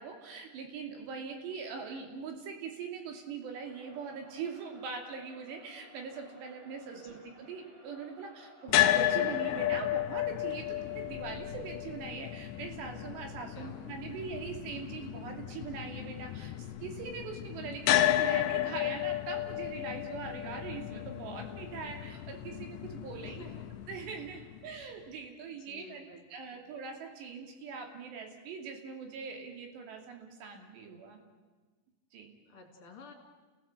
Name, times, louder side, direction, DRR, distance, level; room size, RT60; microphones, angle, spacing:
voice 1, 0.0-23.4 23.9-31.2 32.1-32.3, right 5 dB, 65° right, 3 dB, 4.6 m, -42 dB
Crowd, 3.5-11.6, equal, 30° right, 3.3 m, -58 dB
sound 1, 8.7-24.8, left 13 dB, 75° left, 2.9 m, -33 dB
voice 2, 13.5-14.1 23.2-23.7 24.3-24.5 25.5-26.2 26.5-26.6 32.5-33.1, left 4 dB, 30° left, 1 dB, 3.5 m, -53 dB
29.5 x 17.5 x 8.1 m, 1.3 s
omnidirectional pair, 5.6 m